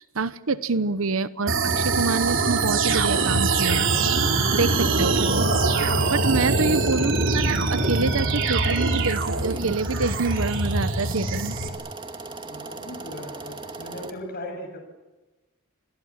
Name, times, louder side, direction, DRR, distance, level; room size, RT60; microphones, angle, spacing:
voice 1, 0.0-3.9 4.5-5.5 6.1-11.6, right 4 dB, 85° right, 14 dB, 1.0 m, -26 dB
sound 1, 1.5-11.7, right 3 dB, 65° right, 3.4 m, -23 dB
sound 2, 1.7-14.1, right 3 dB, 25° right, 2.3 m, -38 dB
voice 2, 4.8-5.3 6.4-6.7 12.5-14.8, left 1 dB, 50° left, 1 dB, 7.1 m, -38 dB
29.5 x 22.5 x 7.4 m, 1.1 s
head